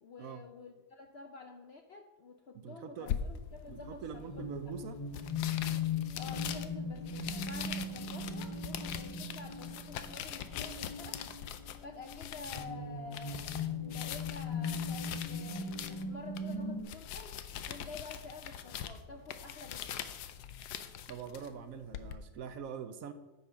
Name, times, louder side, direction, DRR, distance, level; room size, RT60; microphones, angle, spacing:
voice 1, 0.0-4.7 6.1-11.2 11.8-17.4 17.7-20.1, left 4 dB, 60° left, 5 dB, 0.7 m, -50 dB
voice 2, 2.5-3.1 3.7-5.0 21.1-23.1, right 7 dB, 65° right, 10 dB, 1.0 m, -44 dB
sound 1, 3.1-22.2, left 9 dB, 80° left, 1.2 m, -43 dB
sound 2, 3.6-16.8, left 4 dB, 40° left, 0.3 m, -39 dB
9.3 x 5.7 x 5.7 m, 1.1 s
omnidirectional pair, 1.7 m